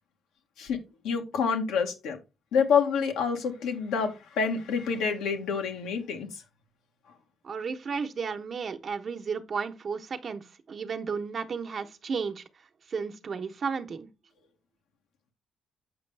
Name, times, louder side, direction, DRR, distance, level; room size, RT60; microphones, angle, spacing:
voice 1, 0.6-2.2 2.5-6.3, left 6 dB, 90° left, 1.5 m, -27 dB
voice 2, 7.4-10.4 10.7-12.4 12.9-14.1, right 5 dB, 50° right, 1.0 m, -33 dB
7.6 x 5.3 x 3.4 m
cardioid pair, 90°, 0 cm